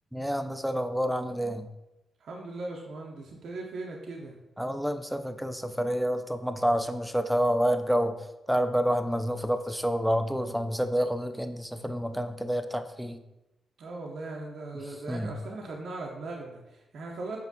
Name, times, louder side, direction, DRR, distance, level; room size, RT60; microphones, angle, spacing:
voice 1, 0.1-1.7 4.6-8.2 8.5-13.2 15.1-15.3, equal, ahead, 8 dB, 0.4 m, -28 dB
voice 2, 2.2-4.4 13.8-17.4, right 2 dB, 70° right, -1 dB, 0.5 m, -39 dB
5.1 x 2.6 x 2.7 m, 0.96 s
hypercardioid pair, 45°, 0 cm